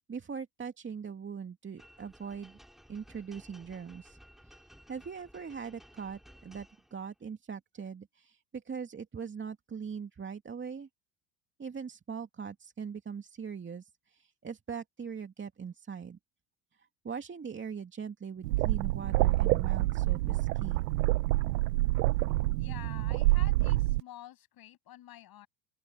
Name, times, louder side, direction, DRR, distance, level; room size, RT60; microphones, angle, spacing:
voice 1, 0.0-2.6 2.9-4.2 4.4-4.6 4.9-10.9 11.6-16.2 16.8-20.8, right 6 dB, 25° right, 2.4 m, -41 dB
sound 1, 1.8-7.2, equal, ahead, 5.8 m, -57 dB
sound 2, 18.4-24.0, right 19 dB, 80° right, 0.9 m, -27 dB
voice 2, 22.6-25.5, left 13 dB, 50° left, 7.7 m, -49 dB
open air
hypercardioid pair, 80°, 47 cm